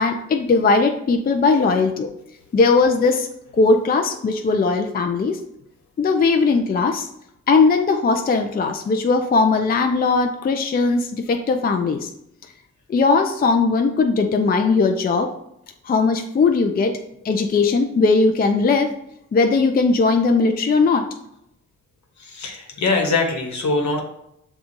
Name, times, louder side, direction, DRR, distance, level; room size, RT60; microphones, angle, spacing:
voice 1, 0.0-2.1 2.5-3.3 3.6-5.4 6.0-7.1 7.5-12.1 12.9-15.3 15.8-16.9 17.2-18.9 19.3-21.1, left 4 dB, 30° left, 4 dB, 0.4 m, -18 dB
voice 2, 22.3-24.0, left 3 dB, 65° left, 2 dB, 1.1 m, -22 dB
6.9 x 2.4 x 2.6 m, 0.78 s
cardioid pair, 75°, 30 cm